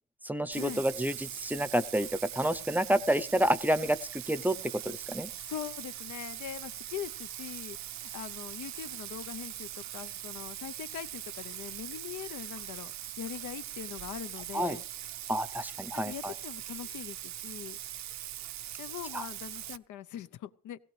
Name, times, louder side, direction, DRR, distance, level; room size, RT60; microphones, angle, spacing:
voice 1, 0.2-5.3 14.5-14.8 15.3-16.3 19.1-19.3, right 1 dB, 5° right, 14 dB, 0.6 m, -29 dB
Bathtub (filling or washing), 0.5-19.8, right 12 dB, 65° right, 0.6 m, -42 dB
voice 2, 5.4-12.9 13.2-14.8 16.0-17.8 18.8-20.8, left 10 dB, 80° left, 12 dB, 0.7 m, -42 dB
17.0 x 16.5 x 3.3 m, 0.40 s
cardioid pair, 90°, 30 cm